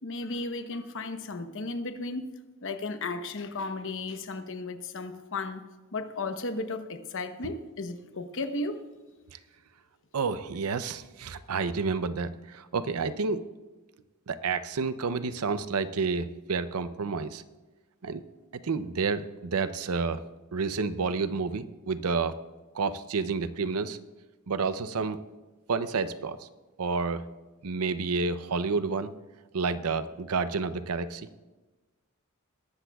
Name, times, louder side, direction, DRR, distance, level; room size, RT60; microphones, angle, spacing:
voice 1, 0.0-2.2 2.6-5.6 5.9-8.8, left 3 dB, 60° left, 0.9 m, -34 dB
voice 2, 10.1-13.4 14.3-17.4 18.0-18.2 18.6-20.2 20.5-22.3 22.7-24.0 24.5-25.2 25.7-26.5 26.8-27.3 27.6-29.1 29.5-31.3, right 4 dB, 85° right, 0.6 m, -30 dB
21.0 x 12.0 x 2.3 m
head